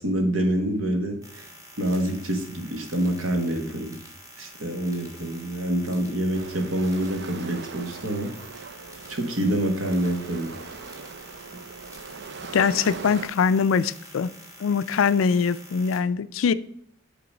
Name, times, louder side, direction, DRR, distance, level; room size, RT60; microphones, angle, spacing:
voice 1, 0.0-1.5 1.8-4.0 4.4-8.3 9.1-10.5, right 1 dB, 75° right, 4 dB, 1.4 m, -26 dB
sound 1, 1.2-16.0, right 1 dB, 15° right, 1.3 m, -47 dB
sound 2, 6.3-13.3, right 5 dB, 55° right, 0.5 m, -40 dB
voice 2, 12.5-14.3 14.6-16.5, left 6 dB, 75° left, 15 dB, 0.4 m, -22 dB
6.8 x 3.9 x 5.1 m, 0.71 s
head